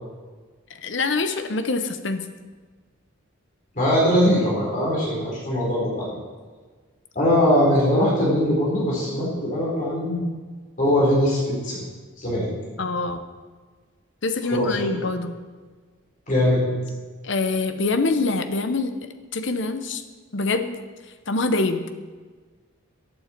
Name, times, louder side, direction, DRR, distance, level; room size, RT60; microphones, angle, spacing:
voice 1, 0.8-2.3 12.8-13.2 14.2-15.4 17.2-18.9 19.3-20.0 20.3-20.8 21.3-21.9, left 3 dB, 60° left, 8 dB, 0.9 m, -25 dB
voice 2, 3.7-6.1 7.1-10.2 10.8-11.8 12.2-12.4 14.5-14.8 16.3-16.6, left 1 dB, 40° left, -5 dB, 4.3 m, -21 dB
14.5 x 8.7 x 4.5 m, 1.4 s
head